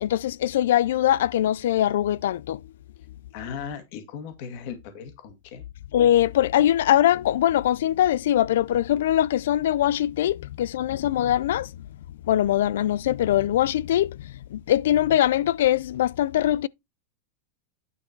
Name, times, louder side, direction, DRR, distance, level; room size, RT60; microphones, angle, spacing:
voice 1, 0.0-2.6 5.9-11.8 12.2-16.7, left 12 dB, 80° left, 0.4 m, -22 dB
voice 2, 3.3-5.6, left 7 dB, 50° left, 1.9 m, -37 dB
9.7 x 4.6 x 4.5 m
supercardioid pair, 160°, 0 cm